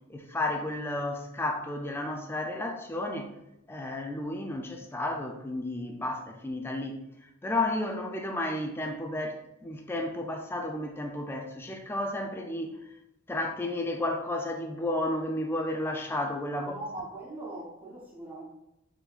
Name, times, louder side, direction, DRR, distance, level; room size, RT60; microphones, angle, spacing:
voice 1, 0.1-3.3 3.7-12.9 13.3-16.7, left 1 dB, 10° left, 0.3 m, -32 dB
voice 2, 16.5-18.4, right 2 dB, 10° right, 0.8 m, -40 dB
3.5 x 3.0 x 2.4 m
head